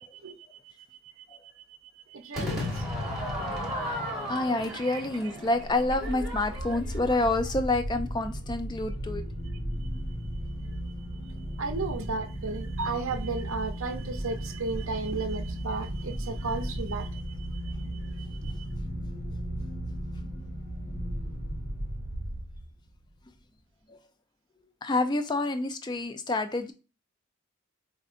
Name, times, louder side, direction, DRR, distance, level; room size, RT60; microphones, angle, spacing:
voice 1, 2.1-2.8 4.7-5.0 11.6-17.7 18.2-18.6, right 4 dB, 75° right, 0.6 m, -34 dB
Crowd / Fireworks, 2.3-7.6, left 1 dB, 5° right, 1.1 m, -35 dB
voice 2, 4.3-9.2 23.9-24.0 24.8-26.7, left 2 dB, 20° left, 0.3 m, -28 dB
sound 1, 5.5-22.9, equal, 80° left, 1.4 m, -35 dB
4.8 x 2.6 x 2.4 m
head